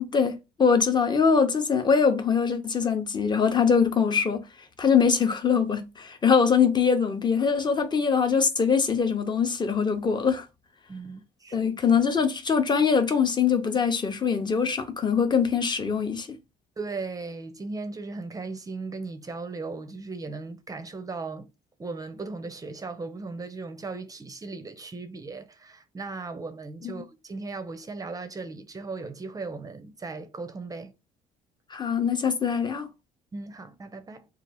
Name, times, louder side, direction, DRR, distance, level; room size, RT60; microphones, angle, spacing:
voice 1, 0.0-4.4 4.8-10.4 11.5-16.3 26.8-27.1 31.7-32.9, left 6 dB, 25° left, 0.8 m, -23 dB
voice 2, 10.9-11.7 16.8-21.5 21.8-30.9 33.3-34.3, right 3 dB, 20° right, 0.6 m, -37 dB
3.3 x 2.4 x 4.2 m
cardioid pair, 110°, 17 cm